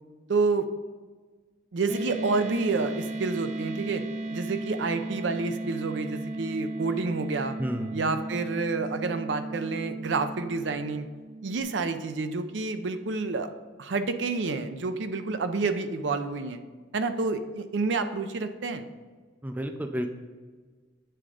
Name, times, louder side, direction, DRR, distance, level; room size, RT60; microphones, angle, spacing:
voice 1, 0.3-0.7 1.7-4.0 4.3-7.6 7.9-11.1 11.4-13.5 13.8-16.6 16.9-18.8, right 3 dB, 70° right, 9 dB, 0.5 m, -29 dB
sound 1, 1.9-11.6, right 2 dB, 40° right, 0.9 m, -36 dB
voice 2, 7.6-7.9 19.4-20.1, equal, 10° right, 6 dB, 0.4 m, -31 dB
7.8 x 3.7 x 4.9 m, 1.4 s
head